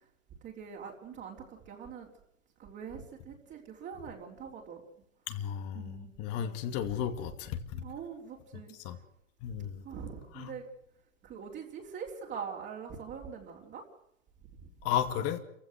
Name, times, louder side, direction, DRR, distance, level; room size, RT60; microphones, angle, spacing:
voice 1, 0.4-2.1 2.6-4.8 5.7-6.1 7.7-8.7 9.6-10.6 11.2-13.8 14.6-14.7, right 7 dB, 30° right, -1 dB, 4.0 m, -43 dB
voice 2, 5.3-7.6 8.8-9.0 9.4-9.8 10.4-10.5 14.8-15.4, left 10 dB, 40° left, 8 dB, 2.4 m, -33 dB
28.0 x 16.0 x 7.9 m, 0.78 s
hypercardioid pair, 125°, 37 cm